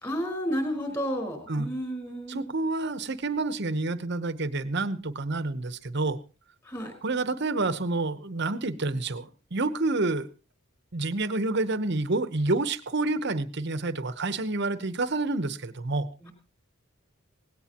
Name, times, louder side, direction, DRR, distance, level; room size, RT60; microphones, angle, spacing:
voice 1, 0.0-2.5 6.6-6.9 16.2-16.3, equal, 20° left, 4 dB, 4.7 m, -31 dB
voice 2, 2.3-6.2 7.0-10.3 10.9-16.1, right 2 dB, 55° right, 12 dB, 1.0 m, -28 dB
18.0 x 17.0 x 3.0 m, 0.33 s
head